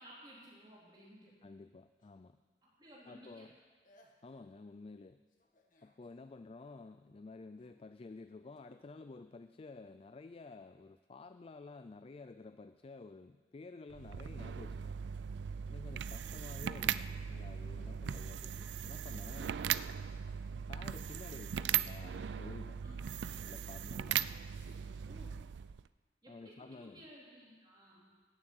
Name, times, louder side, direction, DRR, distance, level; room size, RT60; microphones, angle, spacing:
voice 1, 0.0-1.3 2.6-3.5 15.8-16.1 22.8-23.2 25.0-25.4 26.2-28.1, equal, 25° right, -6 dB, 3.7 m, -57 dB
voice 2, 1.4-2.4 3.1-3.5 4.2-5.2 5.8-15.0 15.7-19.7 20.7-22.8 23.5-24.2 26.3-27.1, left 3 dB, 35° left, 10 dB, 0.4 m, -52 dB
sound 1, 2.0-2.6 3.6-3.7 3.8-4.5 5.3-6.2 7.5-7.8 8.6-8.7, left 1 dB, 50° left, 1.6 m, -69 dB
sound 2, 13.9-25.9, right 9 dB, 85° right, 0.4 m, -39 dB
15.0 x 7.4 x 9.4 m, 1.5 s
head